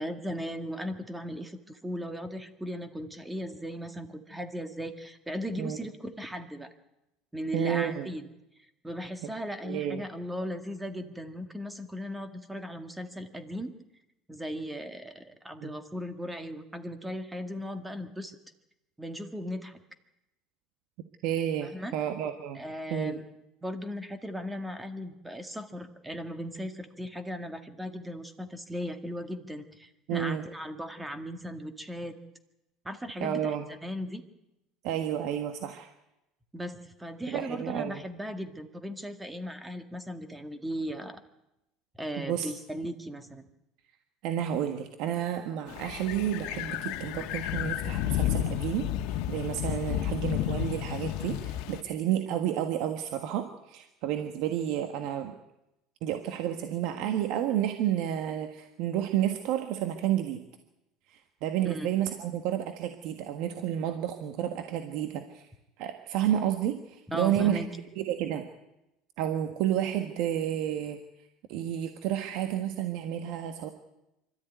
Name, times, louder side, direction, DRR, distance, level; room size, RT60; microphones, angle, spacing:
voice 1, 0.0-6.7 7.3-8.3 8.8-13.7 14.3-18.4 19.0-19.8 21.6-21.9 22.5-23.2 23.6-32.2 32.8-34.2 36.5-41.2 42.0-43.5 61.6-61.9 67.1-67.7, equal, 5° right, 8 dB, 1.9 m, -37 dB
voice 2, 7.5-8.1 9.6-10.0 15.6-15.7 21.2-22.6 22.9-23.2 30.1-30.4 33.2-33.6 34.8-35.9 37.3-38.0 42.2-42.5 44.2-55.3 56.0-60.4 61.1-65.4 65.8-67.6 68.1-68.4 69.2-71.0 71.5-73.7, right 11 dB, 65° right, 6 dB, 1.6 m, -31 dB
sound 1, 45.7-51.8, left 12 dB, 70° left, 1.4 m, -31 dB
24.5 x 13.5 x 9.4 m, 0.93 s
supercardioid pair, 135°, 0 cm